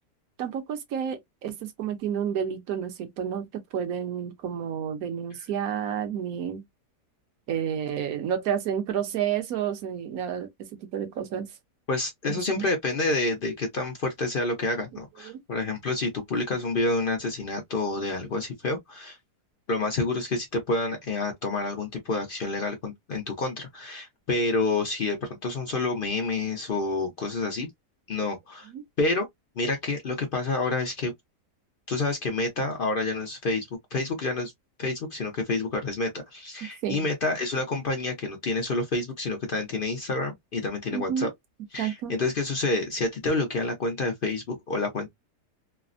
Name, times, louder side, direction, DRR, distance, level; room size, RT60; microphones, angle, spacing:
voice 1, 0.4-6.6 7.5-11.5 12.3-12.7 15.2-15.4 28.7-28.8 36.8-37.0 40.9-41.3 41.8-42.1, right 8 dB, 65° right, 1.1 m, -30 dB
voice 2, 11.9-19.2 19.7-27.7 28.1-28.7 29.0-29.3 29.6-31.1 31.9-34.5 34.8-41.3 41.7-45.1, left 3 dB, 70° left, 0.5 m, -28 dB
3.3 x 2.0 x 2.4 m
omnidirectional pair, 1.8 m